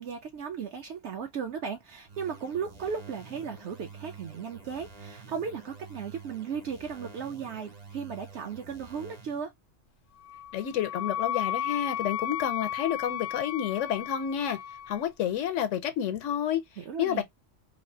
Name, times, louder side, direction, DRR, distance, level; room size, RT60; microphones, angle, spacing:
voice 1, 0.0-9.5 16.8-17.2, right 6 dB, 70° right, 0.9 m, -36 dB
sound 1, 2.1-9.5, right 4 dB, 40° right, 0.7 m, -48 dB
Wind instrument woodwind instrument, 10.2-15.0, left 10 dB, 60° left, 0.6 m, -34 dB
voice 2, 10.5-14.6 14.9-16.6 17.0-17.2, left 10 dB, 85° left, 1.0 m, -29 dB
3.2 x 2.4 x 2.6 m
omnidirectional pair, 1.3 m